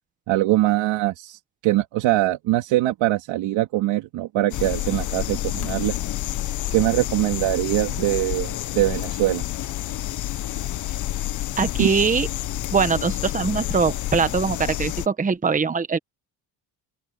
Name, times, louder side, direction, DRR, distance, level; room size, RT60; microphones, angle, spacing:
voice 1, 0.3-5.9 6.7-9.4 11.8-11.9, right 16 dB, 70° right, 2.8 m, -22 dB
sound 1, 4.5-15.1, left 13 dB, 40° left, 0.6 m, -29 dB
voice 2, 11.6-12.3 12.7-16.0, right 5 dB, 15° right, 1.3 m, -22 dB
open air
cardioid pair, 135°, 46 cm